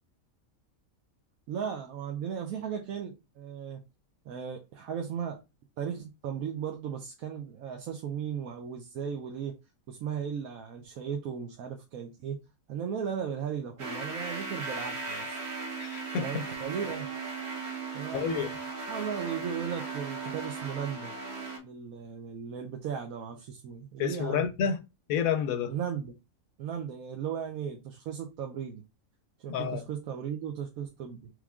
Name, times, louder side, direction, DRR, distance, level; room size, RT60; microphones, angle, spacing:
voice 1, 1.5-3.8 4.2-5.4 5.8-9.5 9.9-12.4 12.7-15.4 16.2-17.1 17.9-18.5 18.9-21.2 21.6-24.5 25.7-26.1 26.6-28.8 29.4-31.3, right 8 dB, 80° right, 1.1 m, -36 dB
sound 1, 13.8-21.6, right 4 dB, 50° right, 1.2 m, -37 dB
voice 2, 15.8-16.4 18.1-18.5 24.0-24.8 25.1-25.7 29.5-29.8, left 8 dB, 80° left, 1.0 m, -29 dB
3.6 x 3.1 x 3.5 m
omnidirectional pair, 1.5 m